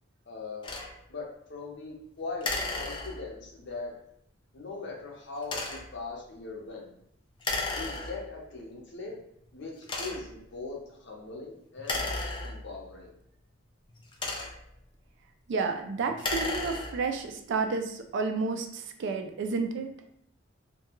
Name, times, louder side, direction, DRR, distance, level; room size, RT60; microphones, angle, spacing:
voice 1, 0.3-0.6 1.1-3.9 4.5-6.9 7.7-9.1 9.5-12.1 12.4-13.1, left 3 dB, 60° left, -1 dB, 0.7 m, -40 dB
sound 1, 0.6-0.9 2.4-3.5 5.4-6.0 7.4-8.4 9.1-9.2 9.8-10.4 11.8-12.9 13.9-14.8 16.1-17.2, left 2 dB, 25° left, 0.4 m, -34 dB
voice 2, 15.5-20.1, right 4 dB, 60° right, 6 dB, 0.3 m, -31 dB
2.3 x 2.2 x 2.9 m, 0.73 s
head